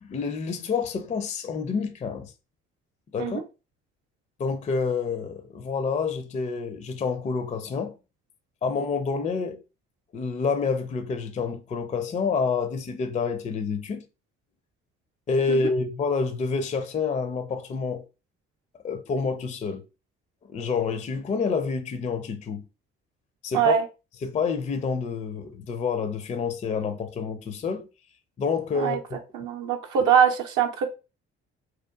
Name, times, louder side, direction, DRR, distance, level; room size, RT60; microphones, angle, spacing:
voice 1, 0.1-2.3 3.1-3.4 4.4-7.9 8.6-9.6 10.1-14.0 15.3-18.0 18.8-19.8 20.5-22.7 23.4-23.7 24.2-27.9 28.4-29.0, left 5 dB, 20° left, 0.4 m, -28 dB
voice 2, 23.5-23.8 28.7-29.0 29.3-30.9, right 8 dB, 65° right, 0.6 m, -22 dB
2.8 x 2.2 x 2.3 m
hypercardioid pair, 45°, 35 cm